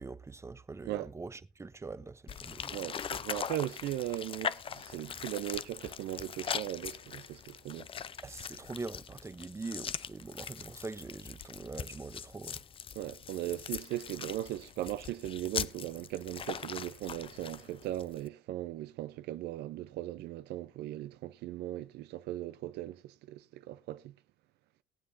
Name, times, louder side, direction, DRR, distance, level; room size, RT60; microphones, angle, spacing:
voice 1, 0.0-2.9 8.2-12.6, right 3 dB, 15° right, 0.7 m, -43 dB
sound 1, 2.3-18.3, left 7 dB, 35° left, 0.5 m, -41 dB
voice 2, 2.7-7.9 12.9-24.1, right 14 dB, 80° right, 0.6 m, -38 dB
21.0 x 7.6 x 2.6 m
cardioid pair, 110°, 17 cm